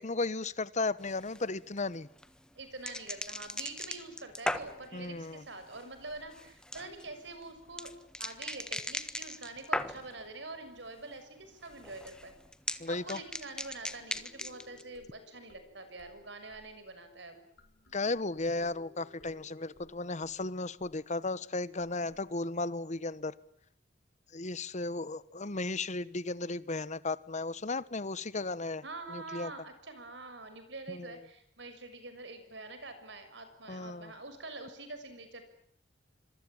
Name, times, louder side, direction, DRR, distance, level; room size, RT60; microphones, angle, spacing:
voice 1, 0.0-2.1 4.9-5.4 12.8-13.2 17.9-23.3 24.3-28.8 29.1-29.5 30.9-31.2 33.7-34.1, left 3 dB, 40° left, 17 dB, 1.2 m, -35 dB
sound 1, 1.0-10.3 10.6-11.2 11.4-14.8, left 1 dB, 5° left, 1.4 m, -39 dB
voice 2, 2.6-7.9 8.2-12.3 12.9-17.4 28.8-35.4, right 3 dB, 70° right, 9 dB, 6.4 m, -45 dB
sound 2, 13.3-22.3, left 3 dB, 65° left, 5.8 m, -61 dB
26.0 x 23.5 x 8.8 m, 0.70 s
head